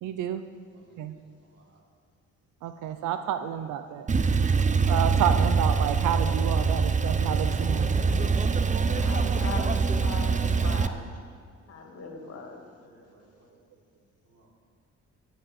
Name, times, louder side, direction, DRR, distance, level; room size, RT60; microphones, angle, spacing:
voice 1, 0.0-0.4 1.0-1.2 2.6-4.1 4.9-7.9, right 9 dB, 85° right, 10 dB, 0.7 m, -30 dB
Male speech man speaking / Car / Idling, 4.1-10.9, right 5 dB, 25° right, 0.7 m, -24 dB
voice 2, 8.7-10.3 10.6-11.1 11.7-12.6, left 4 dB, 55° left, 3 dB, 2.3 m, -39 dB
voice 3, 12.8-13.6 14.3-14.5, right 2 dB, 55° right, -3 dB, 4.0 m, -60 dB
16.0 x 6.3 x 8.1 m, 2.1 s
cardioid pair, 90°, 30 cm